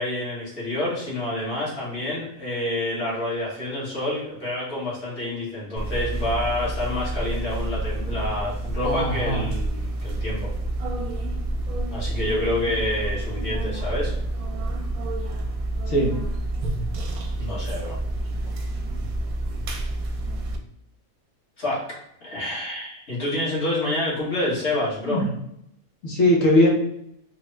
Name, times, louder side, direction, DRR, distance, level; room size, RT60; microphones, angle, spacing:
voice 1, 0.0-10.5 11.9-14.1 17.4-18.0 21.6-21.8 22.2-25.2, left 1 dB, 50° left, -7 dB, 1.6 m, -28 dB
sound 1, 5.8-20.6, right 1 dB, 80° right, 1.0 m, -29 dB
voice 2, 8.8-9.4 15.9-16.1 18.5-18.6 25.0-25.3 26.0-26.7, left 1 dB, 65° left, -1 dB, 1.3 m, -20 dB
3.6 x 2.1 x 3.1 m, 0.78 s
omnidirectional pair, 1.5 m